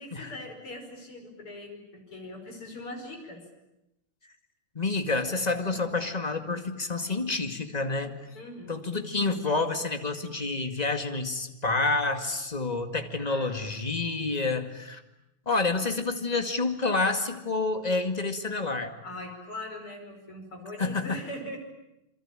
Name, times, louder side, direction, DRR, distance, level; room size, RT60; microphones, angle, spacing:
voice 1, 0.0-3.4 8.3-8.8 13.2-13.7 19.0-21.6, left 1 dB, 80° left, 4 dB, 6.4 m, -41 dB
voice 2, 4.8-8.2 8.7-15.0 15.5-18.9 20.8-21.2, left 3 dB, 20° left, 7 dB, 2.1 m, -28 dB
27.5 x 24.0 x 9.0 m, 0.89 s
omnidirectional pair, 2.4 m